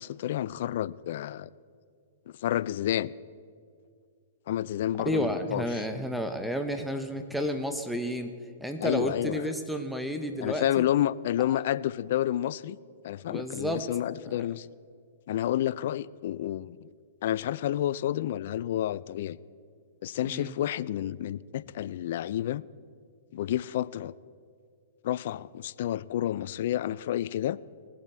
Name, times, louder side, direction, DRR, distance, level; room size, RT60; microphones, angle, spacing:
voice 1, 0.0-1.5 2.3-3.1 4.5-5.8 8.8-9.5 10.4-12.8 13.0-14.7 15.3-16.9 17.2-19.4 20.0-22.6 23.3-24.1 25.0-27.6, left 12 dB, 60° left, 19 dB, 0.3 m, -30 dB
voice 2, 5.1-8.3 8.6-10.8 13.3-13.8 20.2-20.5, equal, ahead, 6 dB, 0.8 m, -31 dB
19.0 x 7.6 x 4.5 m, 2.2 s
hypercardioid pair, 120°, 0 cm